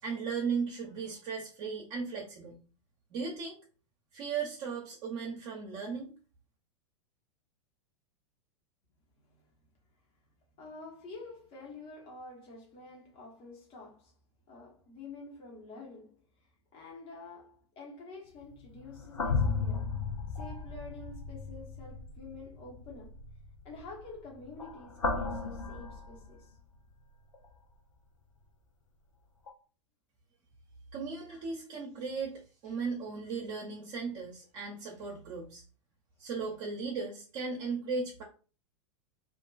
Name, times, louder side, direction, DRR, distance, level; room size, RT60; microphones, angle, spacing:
voice 1, 0.0-2.6 3.1-3.6 4.1-6.1 30.9-35.6 36.2-38.2, right 5 dB, 40° right, 0.6 m, -36 dB
voice 2, 10.6-14.1 14.5-19.9 20.3-23.2 23.6-26.6 31.3-31.4, left 3 dB, 35° left, 0.9 m, -48 dB
sound 1, 18.4-26.8 27.3-27.5 29.5-29.6, left 4 dB, 75° left, 0.6 m, -36 dB
2.5 x 2.2 x 2.3 m
figure-of-eight pair, 95°, 17 cm